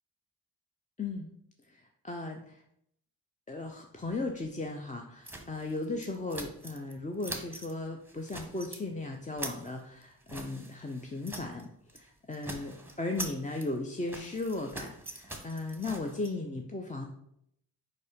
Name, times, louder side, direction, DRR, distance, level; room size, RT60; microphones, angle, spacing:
voice 1, 1.0-1.3 1.7-2.6 3.5-17.1, left 2 dB, 15° left, 2 dB, 0.6 m, -36 dB
sound 1, 5.3-6.9 7.2-7.7 8.1-8.8 9.1-11.6 11.9-12.1 12.3-16.3, right 1 dB, 5° right, 1.0 m, -43 dB
4.7 x 4.2 x 5.0 m, 0.75 s
cardioid pair, 60°, 46 cm